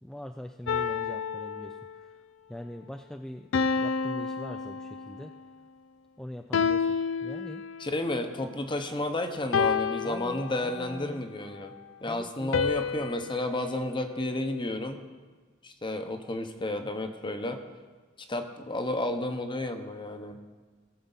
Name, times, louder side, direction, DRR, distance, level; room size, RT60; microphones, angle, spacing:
voice 1, 0.0-2.2 2.5-3.5 3.7-5.3 6.2-7.6 10.0-11.2 12.1-12.6, equal, 5° left, 4 dB, 0.3 m, -42 dB
sound 1, 0.7-2.2 3.5-5.4 6.5-8.0 9.5-11.0 12.5-14.8, left 5 dB, 70° left, 0.4 m, -30 dB
voice 2, 7.8-11.7 12.0-15.0 15.6-17.6 18.3-20.4, left 1 dB, 25° left, 6 dB, 0.9 m, -32 dB
18.5 x 7.1 x 4.0 m, 1.4 s
head